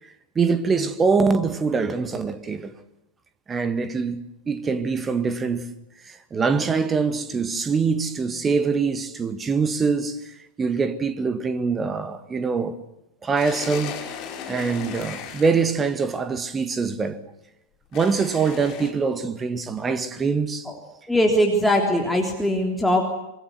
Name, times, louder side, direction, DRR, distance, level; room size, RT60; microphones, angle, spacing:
voice 1, 0.4-2.7 3.5-5.7 6.1-12.8 13.2-14.1 14.5-17.2 17.9-20.7, right 5 dB, 20° right, 1.9 m, -24 dB
sound 1, 13.4-15.7 17.9-18.9, left 8 dB, 40° left, 4.6 m, -36 dB
voice 2, 21.1-23.0, equal, 5° left, 3.6 m, -20 dB
26.0 x 23.5 x 7.8 m
figure-of-eight pair, 90°, 0 cm